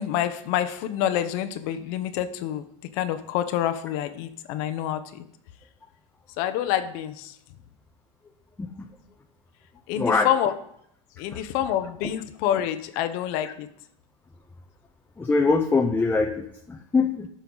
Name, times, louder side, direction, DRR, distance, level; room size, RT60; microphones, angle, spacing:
voice 1, 0.0-2.6 2.9-5.2 6.4-7.4 9.9-10.5 11.2-13.7, left 11 dB, 60° left, 9 dB, 0.9 m, -27 dB
voice 2, 9.9-10.3 11.3-11.4 15.2-17.3, left 4 dB, 10° left, 3 dB, 0.8 m, -23 dB
13.0 x 5.6 x 4.0 m, 0.72 s
supercardioid pair, 130°, 17 cm